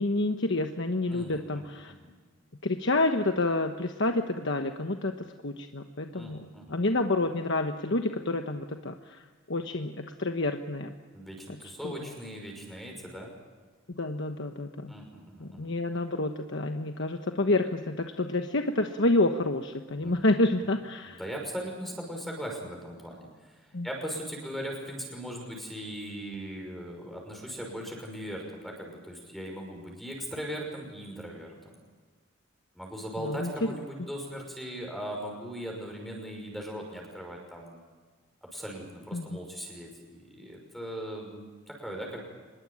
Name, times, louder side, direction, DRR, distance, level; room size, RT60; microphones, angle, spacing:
voice 1, 0.0-1.9 2.6-9.2 9.5-10.9 11.8-12.0 14.0-14.9 15.4-21.2 23.7-23.9 33.2-33.5 39.1-39.4, left 2 dB, 60° left, 5 dB, 1.2 m, -29 dB
voice 2, 1.1-2.1 6.1-6.8 11.1-13.3 14.9-15.7 20.0-20.2 20.6-20.8 21.1-31.8 32.7-37.8 38.4-42.2, equal, ahead, 1 dB, 5.9 m, -39 dB
25.5 x 21.5 x 8.7 m, 1.4 s
head